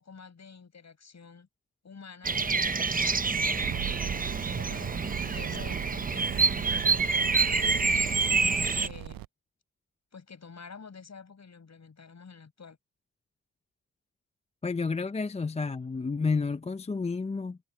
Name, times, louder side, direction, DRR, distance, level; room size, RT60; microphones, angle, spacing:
voice 1, 0.0-1.5 1.8-8.1 8.7-9.3 10.1-12.8, left 5 dB, 50° left, 6.9 m, -49 dB
Bird vocalization bird call bird song, 2.2-8.9, right 4 dB, 25° right, 0.8 m, -27 dB
sound 1, 2.7-8.8, right 6 dB, 60° right, 3.6 m, -52 dB
sound 2, 3.6-9.3, right 14 dB, 75° right, 0.5 m, -39 dB
voice 2, 14.6-17.6, left 4 dB, 20° left, 0.5 m, -30 dB
cardioid pair, 75°, 35 cm